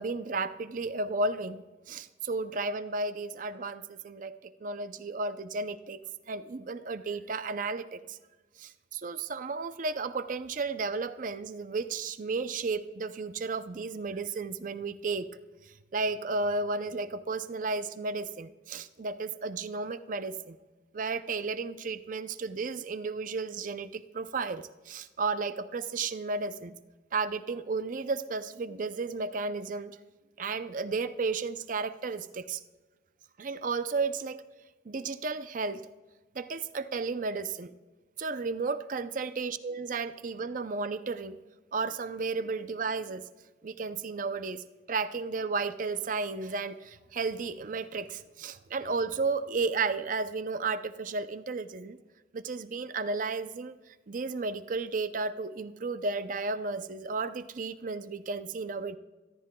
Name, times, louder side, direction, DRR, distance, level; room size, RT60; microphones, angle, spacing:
voice 1, 0.0-6.0 6.3-8.2 8.6-15.3 15.9-20.6 20.9-26.7 27.1-29.9 30.4-32.6 33.4-34.4 34.9-35.8 36.3-37.7 38.2-41.4 41.7-43.2 43.6-52.0 52.3-53.7 54.1-59.0, right 4 dB, 50° right, 12 dB, 0.5 m, -33 dB
25.0 x 14.0 x 2.2 m, 1.3 s
head